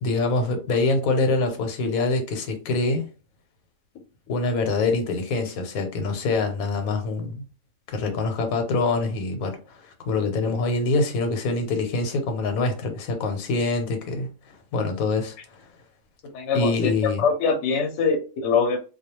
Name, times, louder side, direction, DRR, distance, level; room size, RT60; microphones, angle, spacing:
voice 1, 0.0-3.1 4.3-7.4 7.9-15.4 16.5-17.3, left 3 dB, 85° left, 1.1 m, -25 dB
voice 2, 16.3-16.9 17.2-18.8, left 5 dB, 65° left, 0.9 m, -23 dB
2.3 x 2.2 x 2.8 m
omnidirectional pair, 1.5 m